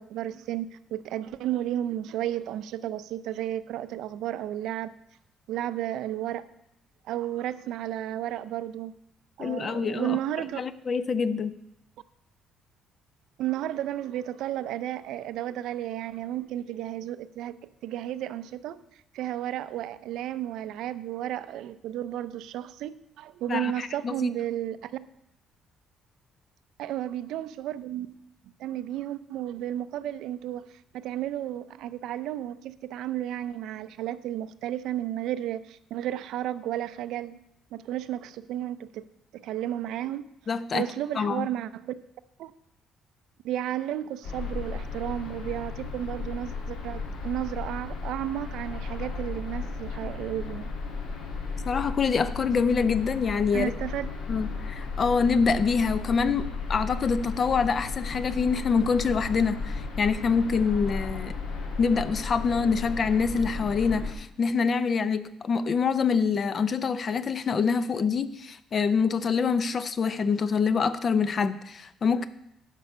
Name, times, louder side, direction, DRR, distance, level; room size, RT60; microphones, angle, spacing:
voice 1, 0.0-4.9 5.5-6.4 7.0-8.9 9.4-10.6 13.4-18.8 19.1-25.0 26.8-28.1 28.4-37.3 37.7-39.1 39.3-40.3 40.7-41.9 42.4-42.5 43.4-50.7 53.5-54.1, right 12 dB, 70° right, 15 dB, 0.5 m, -33 dB
voice 2, 9.4-10.2 10.5-11.5 23.5-24.3 40.5-40.9 41.2-41.5 51.7-53.7 54.3-61.4 61.8-72.3, left 5 dB, 30° left, 14 dB, 0.4 m, -25 dB
sound 1, 44.2-64.1, left 4 dB, 75° left, 2.0 m, -35 dB
11.0 x 5.4 x 6.8 m, 0.79 s
cardioid pair, 175°, 0 cm